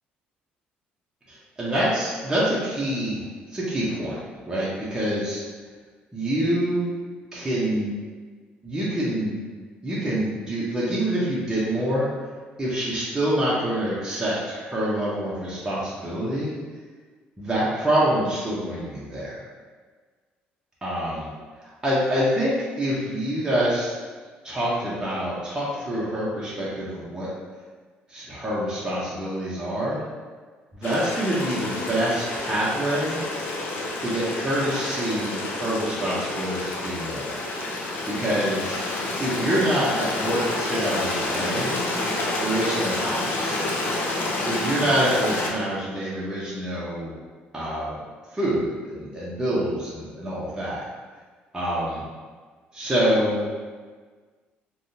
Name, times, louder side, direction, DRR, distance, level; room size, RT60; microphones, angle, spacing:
voice 1, 1.3-3.2 3.5-4.2 4.5-5.4 6.1-6.9 7.3-7.9 8.6-9.5 9.8-12.1 12.6-16.5 17.4-19.4 20.8-21.3 21.6-23.9 24.4-27.3 28.1-30.0 30.7-33.2 34.0-37.4 38.1-38.8 39.2-41.7 42.4-43.7 44.5-47.1 47.5-48.0 48.3-50.8 51.5-52.0 52.7-53.5, right 1 dB, 15° right, -8 dB, 0.8 m, -26 dB
Stream, 30.8-45.5, left 2 dB, 65° left, 0.5 m, -28 dB
3.5 x 2.2 x 2.7 m, 1.5 s
supercardioid pair, 85°, 4 cm